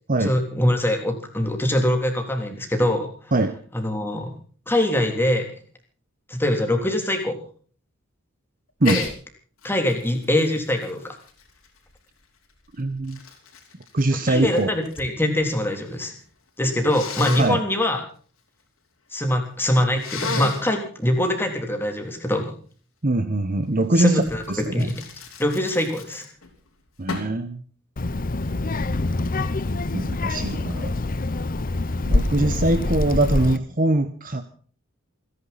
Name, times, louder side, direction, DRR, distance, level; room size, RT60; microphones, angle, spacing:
voice 1, 0.2-3.1 3.7-4.3 4.7-5.5 6.3-7.4 8.8-9.1 9.6-11.2 14.3-16.2 16.6-18.0 19.1-22.6 24.0-24.4 24.7-24.9 25.4-26.2, left 1 dB, 10° left, 3 dB, 3.5 m, -23 dB
Sneeze, 8.8-9.1 9.6-12.0 12.7-15.1 15.4-16.0 16.9-17.5 20.0-20.7 24.2-26.5 27.1-27.4, left 4 dB, 75° left, 4.6 m, -33 dB
voice 2, 12.8-13.2 13.9-14.7 17.4-17.6 23.0-24.2 24.5-24.9 27.0-27.6 29.9-30.9 32.1-34.4, right 2 dB, 40° right, 10 dB, 1.1 m, -22 dB
Child speech kid speaking, 28.0-33.6, left 2 dB, 40° left, 0.8 m, -25 dB
28.5 x 11.0 x 4.2 m, 0.43 s
head